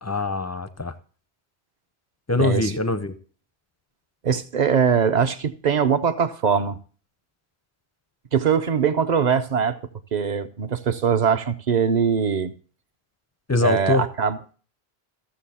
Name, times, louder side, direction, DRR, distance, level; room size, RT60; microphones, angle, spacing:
voice 1, 0.0-0.9 2.3-3.1 13.5-14.0, left 2 dB, 25° left, 0.3 m, -23 dB
voice 2, 2.4-2.7 4.2-6.8 8.3-9.8 10.1-12.5 13.6-14.4, right 7 dB, 50° right, 0.6 m, -22 dB
14.5 x 6.8 x 4.2 m
omnidirectional pair, 1.1 m